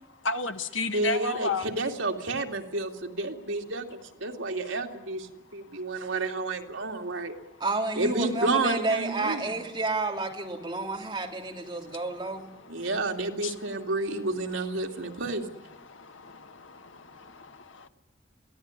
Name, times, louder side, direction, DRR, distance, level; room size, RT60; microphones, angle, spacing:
voice 1, 0.2-1.7 13.4-13.5 15.8-17.9, left 3 dB, 85° left, 1.4 m, -33 dB
voice 2, 0.9-7.3 7.9-9.5 12.7-15.6, right 2 dB, 85° right, 2.6 m, -30 dB
voice 3, 7.6-12.5, right 3 dB, 20° right, 3.3 m, -30 dB
23.0 x 16.5 x 9.9 m
head